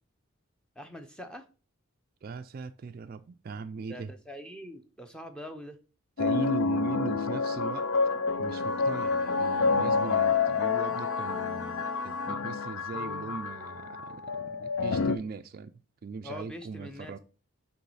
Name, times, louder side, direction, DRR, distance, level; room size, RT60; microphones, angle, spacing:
voice 1, 0.8-1.5 3.9-5.8 16.2-17.2, left 1 dB, 5° left, 0.6 m, -43 dB
voice 2, 2.2-4.1 6.2-7.9 8.4-15.7 16.0-17.2, right 4 dB, 45° right, 0.3 m, -39 dB
sound 1, 6.2-15.1, left 4 dB, 70° left, 0.4 m, -28 dB
Bowed string instrument, 8.4-12.6, left 2 dB, 40° left, 1.1 m, -45 dB
8.0 x 3.1 x 4.7 m
head